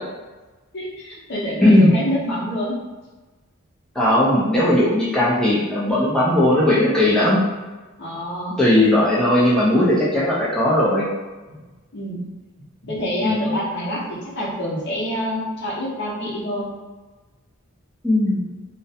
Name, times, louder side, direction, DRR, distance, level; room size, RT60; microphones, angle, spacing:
voice 1, 0.7-2.8 8.0-8.5 11.5-11.6 11.9-12.2 12.8-16.7, equal, 50° left, -5 dB, 0.7 m, -27 dB
voice 2, 1.6-1.9 4.0-7.4 8.6-11.1 13.2-13.6 18.0-18.4, left 1 dB, 5° left, -8 dB, 0.4 m, -17 dB
2.4 x 2.1 x 2.7 m, 1.2 s
head